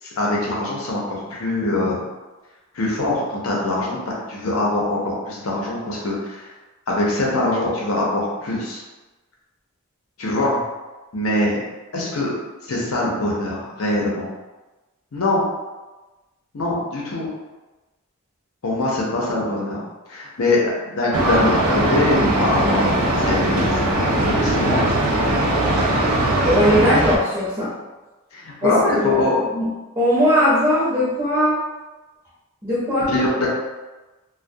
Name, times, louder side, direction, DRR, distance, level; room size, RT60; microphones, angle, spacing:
voice 1, 0.0-2.0 2.7-4.0 4.3-6.5 6.9-8.8 10.2-10.6 11.1-11.6 11.9-12.3 12.7-14.3 15.1-15.4 16.5-17.3 18.6-19.8 20.1-24.9 28.3-29.4 33.0-33.5, left 2 dB, 75° left, -4 dB, 0.6 m, -23 dB
sound 1, 21.1-27.2, right 1 dB, 80° right, 0.4 m, -19 dB
voice 2, 26.4-27.7 28.6-29.7 30.0-31.6 32.6-33.1, equal, 20° right, -11 dB, 0.8 m, -19 dB
2.2 x 2.2 x 2.6 m, 1.1 s
head